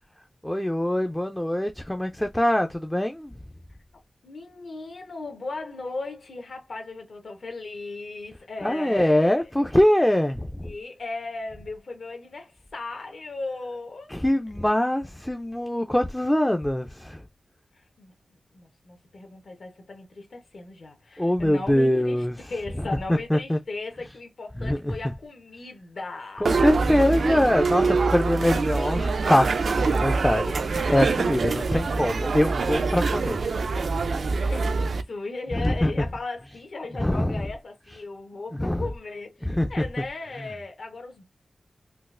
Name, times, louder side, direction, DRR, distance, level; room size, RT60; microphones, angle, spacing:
voice 1, 0.4-3.3 8.6-10.7 14.1-17.2 21.2-22.4 23.1-23.6 24.6-25.0 26.4-33.4 35.5-36.0 36.9-37.5 38.5-38.9 39.4-39.8, left 1 dB, 10° left, 0.3 m, -23 dB
voice 2, 4.2-9.3 10.6-14.1 17.7-18.1 18.5-26.4 34.5-41.3, left 3 dB, 70° left, 1.0 m, -37 dB
sound 1, 26.4-35.0, right 4 dB, 70° right, 0.3 m, -25 dB
3.8 x 2.4 x 2.4 m
wide cardioid pair, 120°, 0 cm